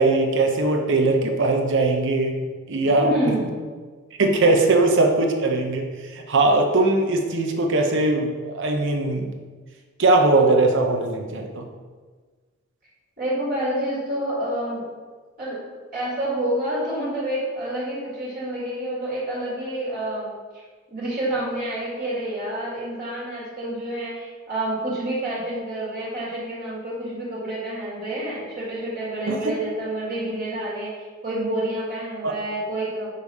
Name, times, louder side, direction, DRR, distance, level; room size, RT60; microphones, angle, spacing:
voice 1, 0.0-3.1 4.2-9.3 10.0-11.7 29.3-29.5 32.2-32.3, right 2 dB, 60° right, 3 dB, 0.7 m, -20 dB
voice 2, 2.8-3.5 13.2-14.8 15.4-15.6 15.9-20.3 20.5-20.6 20.9-33.1, right 1 dB, 40° right, -7 dB, 1.8 m, -28 dB
5.4 x 4.9 x 4.1 m, 1.5 s
head